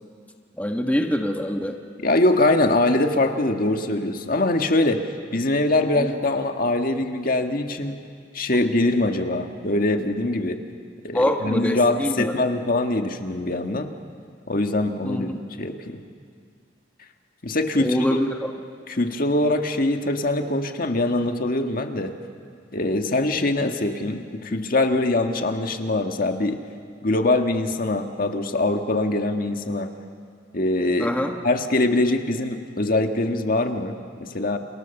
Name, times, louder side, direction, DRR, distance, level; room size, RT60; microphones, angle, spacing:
voice 1, 0.6-1.8 6.0-6.1 11.1-12.3 15.0-15.3 17.8-18.5 31.0-31.3, equal, 10° left, 3 dB, 1.3 m, -24 dB
voice 2, 2.0-5.0 5.3-8.0 8.3-10.6 11.0-13.9 14.5-16.0 17.4-18.1 18.9-22.1 22.7-26.6 27.0-29.9 30.5-31.1 31.4-34.6, left 2 dB, 50° left, 5 dB, 1.7 m, -23 dB
29.5 x 27.0 x 7.1 m, 2.2 s
head